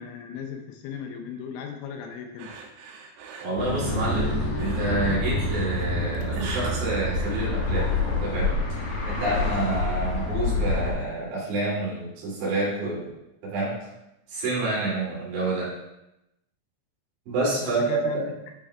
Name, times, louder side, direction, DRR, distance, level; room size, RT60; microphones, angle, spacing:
voice 1, 0.0-2.6 17.6-18.3, left 7 dB, 85° left, 3 dB, 3.0 m, -36 dB
sound 1, 2.4-7.9, right 4 dB, 85° right, 3.4 m, -42 dB
voice 2, 3.4-4.3 4.6-7.9 8.2-13.1 13.4-13.9 14.3-15.7 17.3-18.2, right 2 dB, 60° right, -7 dB, 4.5 m, -28 dB
sound 2, 3.6-10.9, left 2 dB, 65° left, 2.3 m, -27 dB
11.5 x 5.4 x 2.3 m, 0.89 s
omnidirectional pair, 5.9 m